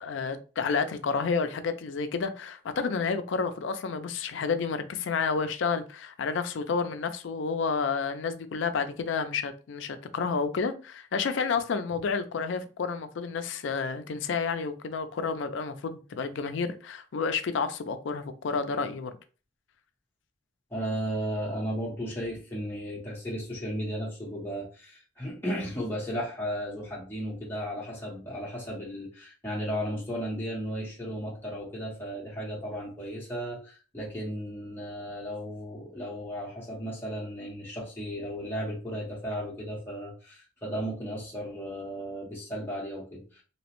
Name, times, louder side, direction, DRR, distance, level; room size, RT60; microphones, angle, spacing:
voice 1, 0.0-19.1, left 5 dB, 65° left, 0.4 m, -30 dB
voice 2, 20.7-43.4, equal, 10° left, 0.7 m, -35 dB
2.8 x 2.1 x 2.9 m
head